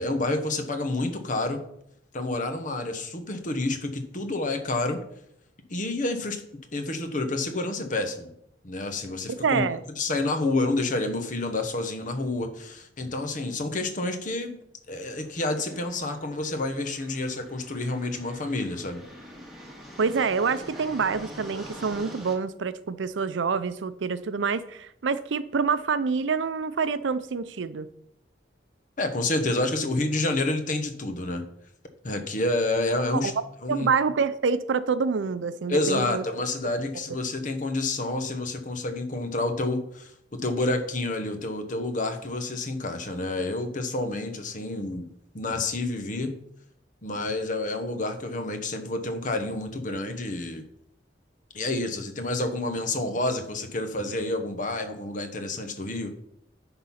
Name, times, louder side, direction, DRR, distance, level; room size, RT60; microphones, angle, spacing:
voice 1, 0.0-1.6 2.1-5.0 5.7-6.4 6.7-8.3 8.6-9.7 10.0-14.5 14.9-19.0 29.0-31.4 32.0-33.3 33.6-33.9 35.7-45.1 45.3-46.4 47.0-50.6 51.5-56.1, left 2 dB, 45° left, 7 dB, 1.0 m, -29 dB
voice 2, 9.4-9.8 20.0-27.9 33.2-33.3 33.7-36.2, right 5 dB, 85° right, 14 dB, 0.5 m, -26 dB
sound 1, 15.1-22.3, equal, ahead, 1.8 m, -45 dB
10.5 x 3.9 x 5.7 m, 0.75 s
head